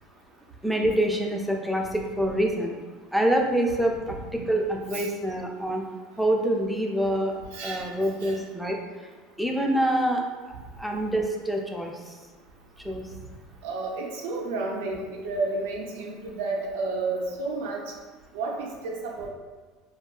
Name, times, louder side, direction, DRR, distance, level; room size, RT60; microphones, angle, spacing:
voice 1, 0.6-2.8 3.1-5.8 6.2-7.4 7.6-9.1 9.4-12.2 12.8-13.1, right 1 dB, ahead, 1 dB, 0.3 m, -26 dB
voice 2, 7.5-7.9 8.2-8.4 13.6-17.9 18.3-19.3, right 3 dB, 85° right, -1 dB, 0.4 m, -31 dB
2.6 x 2.3 x 2.3 m, 1.4 s
supercardioid pair, 125°, 0 cm